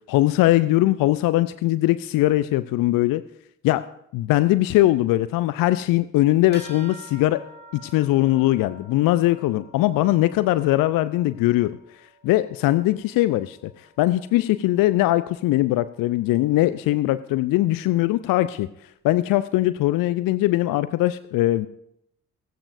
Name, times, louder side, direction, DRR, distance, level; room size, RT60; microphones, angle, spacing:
voice 1, 0.1-3.2 3.6-7.4 7.7-11.8 12.2-18.7 19.0-21.7, left 16 dB, 55° left, 15 dB, 0.6 m, -21 dB
sound 1, 6.5-16.3, right 1 dB, 25° right, 3.7 m, -49 dB
16.5 x 15.5 x 2.6 m, 0.75 s
figure-of-eight pair, 40°, 39 cm